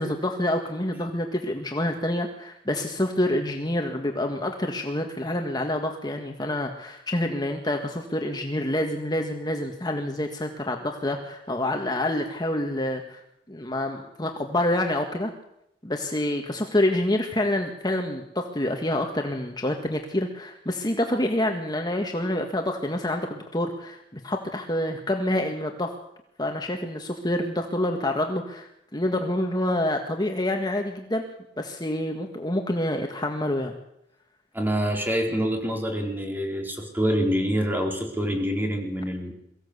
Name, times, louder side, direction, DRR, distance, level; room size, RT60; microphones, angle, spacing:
voice 1, 0.0-13.2 13.5-15.3 15.8-25.9 26.4-31.2 31.6-33.8, left 1 dB, 25° left, 3 dB, 1.8 m, -27 dB
voice 2, 34.5-39.3, equal, 10° right, 2 dB, 4.4 m, -26 dB
23.0 x 16.0 x 8.3 m, 0.80 s
head